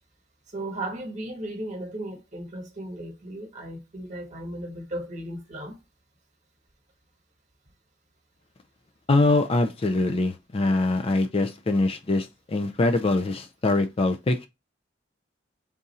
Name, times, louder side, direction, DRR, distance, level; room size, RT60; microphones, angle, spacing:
voice 1, 0.5-5.7, right 1 dB, 40° right, 1.2 m, -35 dB
voice 2, 9.1-14.5, left 2 dB, 30° left, 0.4 m, -23 dB
3.6 x 2.7 x 4.0 m
head